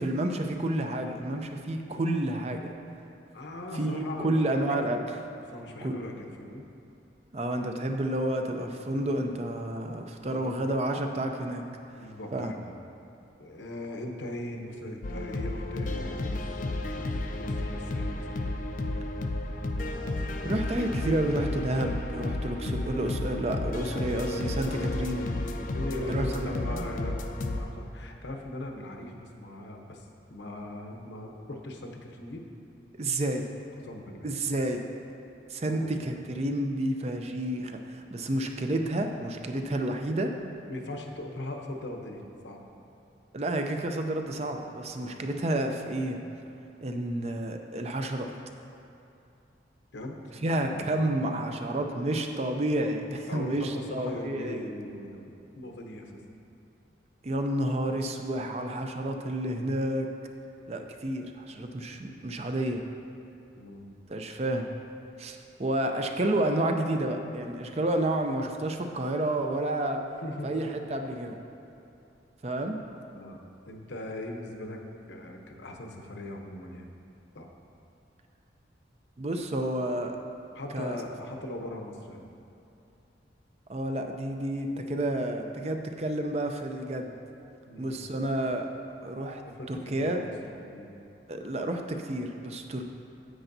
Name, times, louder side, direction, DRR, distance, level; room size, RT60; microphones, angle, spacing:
voice 1, 0.0-2.7 3.7-5.2 5.8-6.0 7.3-11.6 12.3-12.5 20.4-25.4 26.1-26.8 33.0-33.4 34.2-34.9 35.5-40.3 43.3-46.2 46.8-48.3 50.4-54.7 57.2-60.1 60.7-62.8 64.1-64.7 65.2-70.0 70.4-71.4 72.4-72.8 79.2-80.1 80.7-81.0 83.7-87.1 87.8-88.7 89.0-89.4 89.7-90.3 91.3-92.8, right 1 dB, 35° right, 4 dB, 0.4 m, -30 dB
voice 2, 3.3-5.0 5.3-6.6 10.2-10.6 12.0-12.7 13.4-16.4 16.8-16.9 17.4-18.3 25.5-32.4 33.8-34.3 35.6-36.0 40.7-42.6 45.0-45.2 49.9-50.2 50.4-51.1 53.3-56.2 63.6-63.9 65.9-66.0 70.2-70.7 73.1-73.4 73.7-74.8 75.1-76.9 77.3-77.5 80.5-82.3 87.7-88.0 89.5-90.3 90.6-90.9, left 1 dB, 75° left, 2 dB, 0.8 m, -40 dB
sound 1, 15.0-27.6, left 2 dB, 45° left, 0.4 m, -32 dB
10.0 x 7.8 x 2.7 m, 2.8 s
head